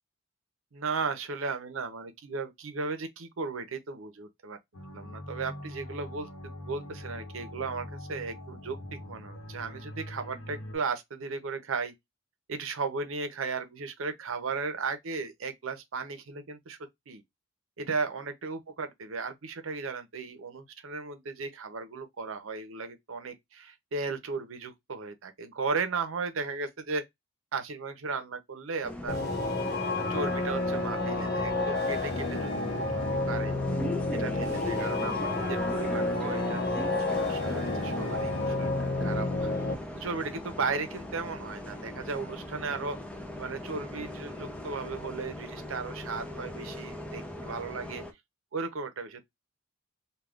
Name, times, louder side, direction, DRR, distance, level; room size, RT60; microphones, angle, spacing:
voice 1, 0.7-4.6 4.9-6.3 6.6-11.9 12.5-16.8 17.1-17.2 17.8-27.0 27.5-29.2 30.1-32.5 32.9-33.5 34.1-39.6 39.9-43.0 43.4-48.0 48.5-49.3, right 4 dB, 75° right, 0.6 m, -35 dB
sound 1, 4.7-10.8, left 1 dB, 80° left, 0.9 m, -43 dB
Bus, 28.8-48.1, left 1 dB, 5° left, 0.5 m, -40 dB
sound 2, 29.1-39.7, left 2 dB, 50° left, 0.8 m, -30 dB
3.4 x 2.3 x 2.3 m
head